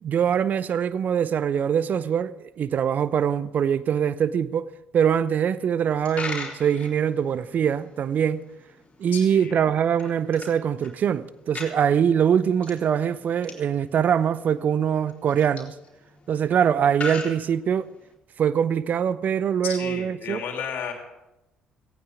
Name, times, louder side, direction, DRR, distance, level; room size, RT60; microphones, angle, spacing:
voice 1, 0.0-8.4 9.0-15.7 16.3-17.9 18.4-20.4, right 8 dB, 40° right, 0.6 m, -23 dB
Coin (dropping), 5.9-18.1, left 3 dB, 30° left, 3.6 m, -41 dB
voice 2, 9.1-9.6 19.6-20.9, left 7 dB, 50° left, 3.0 m, -33 dB
17.5 x 15.5 x 3.7 m
figure-of-eight pair, 50°, 4 cm